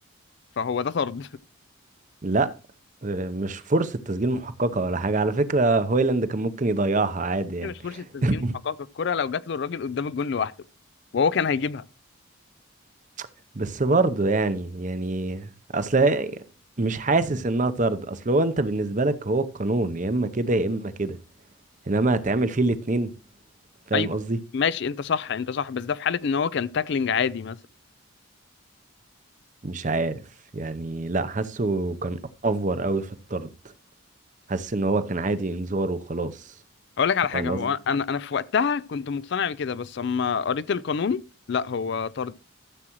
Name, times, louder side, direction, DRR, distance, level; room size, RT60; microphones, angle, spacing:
voice 1, 0.6-1.3 7.6-10.5 11.1-11.8 23.9-24.1 24.5-27.6 37.0-41.2 41.5-42.3, left 6 dB, 55° left, 0.4 m, -26 dB
voice 2, 2.2-2.5 3.0-7.7 8.2-8.6 13.2-13.3 13.6-16.3 16.8-21.2 21.9-23.1 23.9-24.4 29.6-30.1 30.5-33.5 34.5-36.3 37.3-37.7, right 2 dB, 40° right, 0.7 m, -25 dB
13.5 x 7.5 x 3.0 m
head